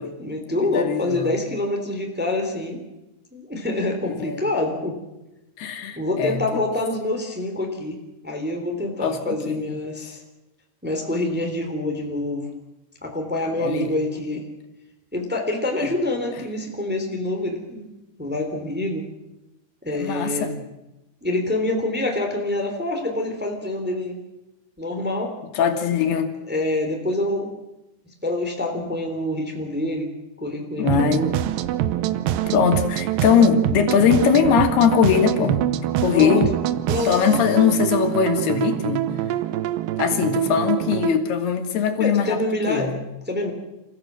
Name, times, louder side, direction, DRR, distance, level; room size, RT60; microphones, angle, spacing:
voice 1, 0.2-2.8 3.3-5.0 6.0-8.0 8.2-10.2 10.8-12.5 13.0-14.4 15.1-17.9 18.2-19.0 19.8-20.5 21.2-24.2 24.8-25.3 26.5-27.5 28.2-30.1 30.4-31.3 36.1-36.5 36.9-37.2 42.0-42.9 43.3-43.5, left 2 dB, 5° right, 2 dB, 2.7 m, -26 dB
voice 2, 0.7-1.4 4.0-4.5 5.6-6.6 9.0-9.8 12.2-12.3 13.6-14.0 19.9-20.6 25.5-26.3 30.8-31.3 32.5-35.6 36.0-36.5 37.1-39.1 40.0-42.4 42.7-42.9, left 7 dB, 85° left, 6 dB, 3.8 m, -21 dB
sound 1, 30.8-41.2, right 13 dB, 75° right, 2.3 m, -25 dB
27.5 x 15.5 x 7.6 m, 0.96 s
omnidirectional pair, 4.5 m